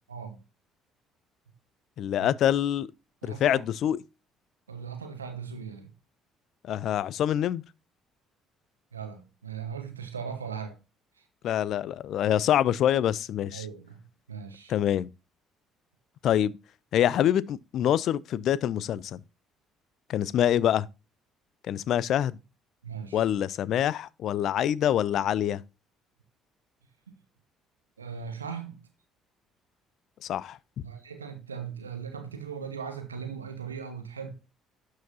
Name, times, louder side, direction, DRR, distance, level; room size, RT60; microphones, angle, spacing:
voice 1, 0.1-0.4 2.1-2.3 3.2-3.6 4.7-5.9 8.9-10.8 13.5-14.0 14.3-14.7 22.8-23.2 28.0-28.8 30.8-34.3, right 6 dB, 90° right, 1.2 m, -38 dB
voice 2, 2.0-2.9 3.2-4.0 6.6-7.6 11.4-13.7 14.7-15.1 16.2-16.5 16.9-19.2 20.1-20.9 21.7-22.4 23.1-25.6 30.2-30.6, left 10 dB, 55° left, 0.4 m, -25 dB
12.0 x 4.8 x 2.7 m
figure-of-eight pair, 50°, 0 cm